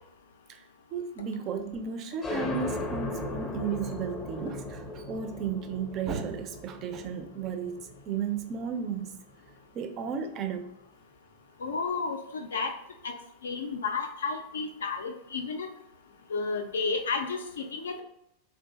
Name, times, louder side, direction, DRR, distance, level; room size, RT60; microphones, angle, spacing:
voice 1, 0.9-4.8 5.1-7.8 8.1-9.2 9.7-10.6, right 6 dB, 35° right, 7 dB, 0.4 m, -33 dB
sound 1, 2.2-9.5, left 2 dB, 20° left, 0.6 m, -38 dB
voice 2, 11.6-12.7 13.0-13.1 13.4-15.7 16.3-17.4 17.7-18.0, left 4 dB, 65° left, 4 dB, 0.3 m, -31 dB
3.6 x 2.6 x 2.2 m, 0.81 s
figure-of-eight pair, 90°, 0 cm